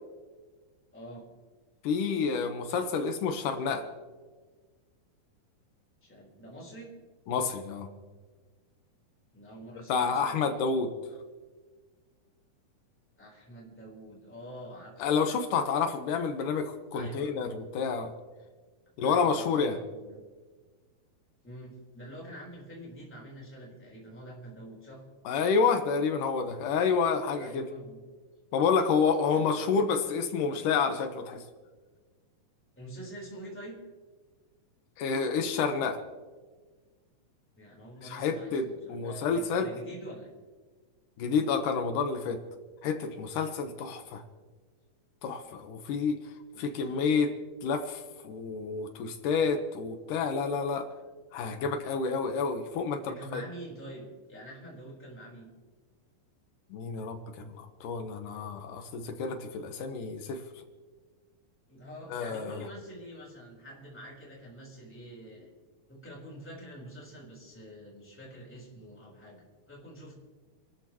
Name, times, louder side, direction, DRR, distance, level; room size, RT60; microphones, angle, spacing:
voice 1, 0.9-1.3 6.0-6.9 9.3-10.6 13.2-14.9 16.9-17.4 19.0-20.2 21.4-25.0 27.3-28.0 29.3-29.7 32.8-33.8 37.6-40.3 46.5-47.0 53.0-55.5 61.7-65.5 65.9-70.1, right 1 dB, 5° left, -4 dB, 3.5 m, -46 dB
voice 2, 1.8-3.9 7.3-7.9 9.9-10.9 15.0-18.1 19.0-19.8 25.3-27.7 28.5-31.4 35.0-36.0 38.0-39.7 41.2-42.4 42.8-44.2 45.2-46.2 46.6-47.3 47.6-50.9 51.3-53.4 56.7-60.4 62.1-62.6, left 5 dB, 70° left, 6 dB, 2.5 m, -29 dB
29.0 x 13.0 x 3.0 m, 1.4 s
omnidirectional pair, 4.1 m